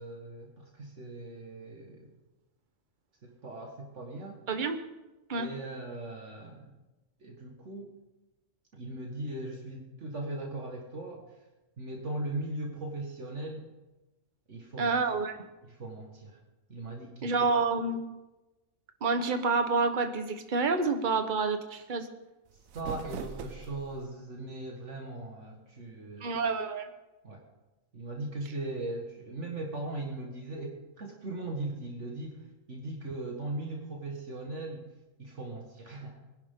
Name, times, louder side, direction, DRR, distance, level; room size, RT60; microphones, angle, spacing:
voice 1, 0.0-2.1 3.2-4.4 5.3-6.7 7.2-7.9 8.7-11.4 11.8-13.7 14.5-15.0 15.7-16.4 16.7-17.3 22.7-26.3 27.2-27.4 27.9-34.9 35.2-36.2, right 2 dB, 60° right, 0 dB, 1.9 m, -39 dB
voice 2, 4.5-4.8 5.3-5.5 14.8-15.3 17.2-18.0 19.0-22.1 26.2-26.9, right 4 dB, 40° right, 7 dB, 1.2 m, -28 dB
sound 1, 22.5-24.1, right 8 dB, 90° right, 1.2 m, -41 dB
22.5 x 11.0 x 3.7 m, 1.0 s
omnidirectional pair, 1.4 m